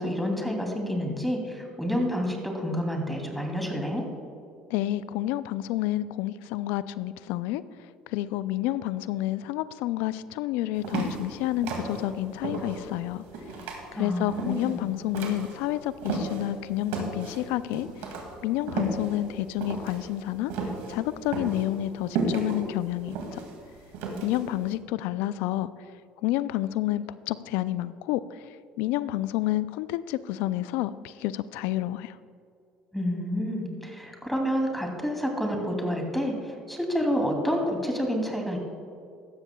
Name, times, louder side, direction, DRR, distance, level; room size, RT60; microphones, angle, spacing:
voice 1, 0.0-4.0 13.9-14.8 32.9-38.6, equal, 5° left, 2 dB, 2.7 m, -29 dB
voice 2, 4.7-7.6 8.1-13.2 13.9-17.9 18.4-20.5 20.9-23.4 24.2-25.7 26.2-28.2 28.8-32.1, left 14 dB, 75° left, 16 dB, 0.4 m, -29 dB
sound 1, 10.8-16.5 16.9-24.6, right 3 dB, 75° right, 2.2 m, -33 dB
16.0 x 12.5 x 2.3 m, 2.4 s
hypercardioid pair, 70°, 3 cm